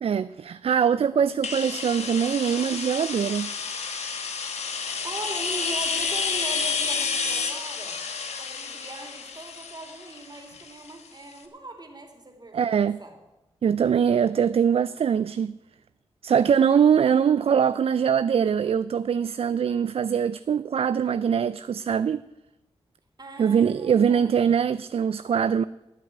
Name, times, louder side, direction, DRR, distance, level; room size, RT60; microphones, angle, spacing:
voice 1, 0.0-3.5 12.5-13.0 13.6-15.5 16.2-22.2 23.4-25.6, right 7 dB, 65° right, 0.4 m, -22 dB
sound 1, 1.4-11.1, left 5 dB, 85° left, 1.4 m, -30 dB
voice 2, 4.8-8.0 8.4-13.2 23.2-24.3, right 2 dB, 40° right, 3.2 m, -40 dB
12.5 x 7.7 x 9.0 m
cardioid pair, 40°, 11 cm